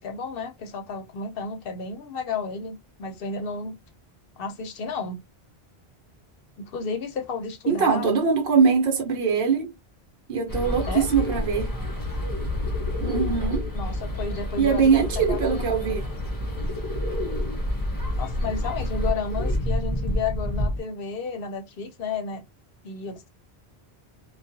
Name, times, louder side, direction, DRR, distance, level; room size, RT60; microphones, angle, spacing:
voice 1, 0.0-3.8 4.4-5.2 6.6-8.1 10.9-11.1 13.7-16.0 18.1-22.4 22.8-23.3, left 4 dB, 65° left, 0.8 m, -32 dB
voice 2, 7.7-9.7 10.3-11.7 13.0-13.7 14.6-16.1, right 6 dB, 65° right, 1.0 m, -22 dB
sound 1, 10.5-20.8, left 1 dB, 25° left, 0.5 m, -28 dB
2.4 x 2.3 x 2.6 m
omnidirectional pair, 1.1 m